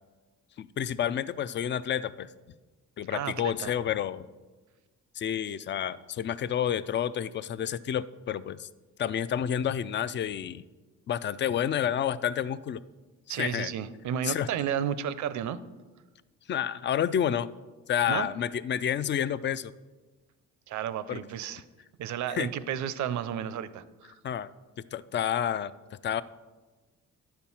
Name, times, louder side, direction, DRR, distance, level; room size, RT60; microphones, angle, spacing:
voice 1, 0.6-2.3 3.0-4.3 5.1-8.7 9.0-10.7 11.1-12.8 13.3-13.7 14.2-14.5 16.5-17.5 17.9-19.7 21.1-21.2 22.3-22.5 24.2-24.5 24.9-25.7 26.0-26.2, left 9 dB, 40° left, 16 dB, 0.4 m, -29 dB
voice 2, 3.1-3.7 13.3-15.6 18.1-18.3 20.7-21.6 22.0-24.1, right 9 dB, 70° right, 15 dB, 0.6 m, -32 dB
10.5 x 4.5 x 7.1 m, 1.3 s
cardioid pair, 90°, 30 cm